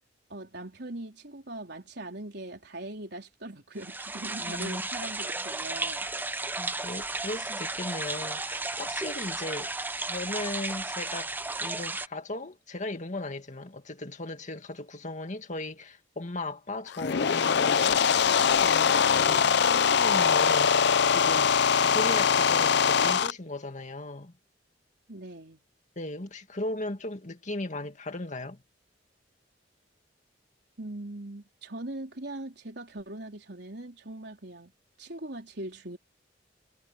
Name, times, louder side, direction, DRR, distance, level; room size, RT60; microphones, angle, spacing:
voice 1, 0.3-6.1 25.1-25.6 30.8-34.7 35.0-36.0, right 1 dB, 65° right, 4.2 m, -40 dB
sound 1, 3.8-12.1, right 2 dB, 10° right, 0.8 m, -34 dB
voice 2, 4.4-4.8 6.6-9.7 10.0-11.3 11.6-21.6 21.8-24.3 26.0-28.6, left 2 dB, 40° left, 2.2 m, -37 dB
sound 2, 16.9-23.3, left 7 dB, 65° left, 0.6 m, -22 dB
head